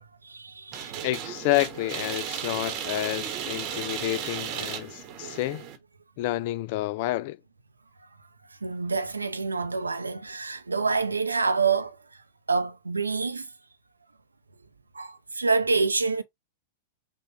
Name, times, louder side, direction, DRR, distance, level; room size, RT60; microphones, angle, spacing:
voice 1, 0.0-0.9 8.6-12.0 12.5-13.5 14.9-16.2, right 4 dB, 85° right, 0.5 m, -27 dB
sound 1, 0.7-5.8, right 9 dB, 40° right, 1.0 m, -35 dB
voice 2, 1.0-5.6 6.2-7.4, left 16 dB, 50° left, 0.3 m, -29 dB
5.3 x 2.4 x 3.2 m
figure-of-eight pair, 100°, 0 cm